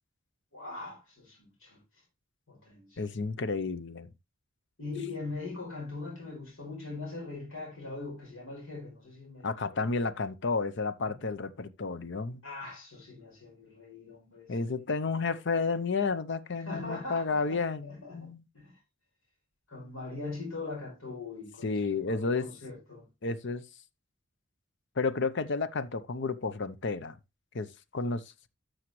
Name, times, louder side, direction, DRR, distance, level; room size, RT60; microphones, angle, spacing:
voice 1, 0.5-1.8 2.5-3.1 4.8-9.9 11.0-11.1 12.4-14.7 16.7-18.3 18.5-18.7 19.7-21.8 22.1-23.0, left 3 dB, 85° left, 4.7 m, -41 dB
voice 2, 3.0-4.1 9.4-12.4 14.5-18.5 21.6-22.5 23.2-23.6 25.0-27.2 27.5-28.2, left 4 dB, 60° left, 0.7 m, -31 dB
12.0 x 6.4 x 3.1 m
head